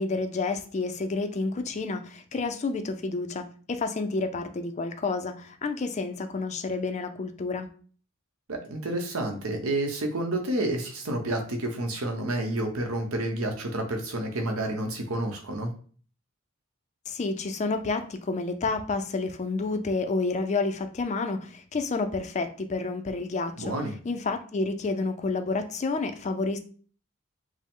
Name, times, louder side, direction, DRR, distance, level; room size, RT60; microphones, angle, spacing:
voice 1, 0.0-7.7 17.1-23.7 24.0-26.6, left 3 dB, 35° left, 8 dB, 0.4 m, -29 dB
voice 2, 8.5-15.7 23.6-23.9, right 1 dB, 85° right, 4 dB, 0.9 m, -29 dB
5.1 x 2.0 x 3.6 m, 0.42 s
head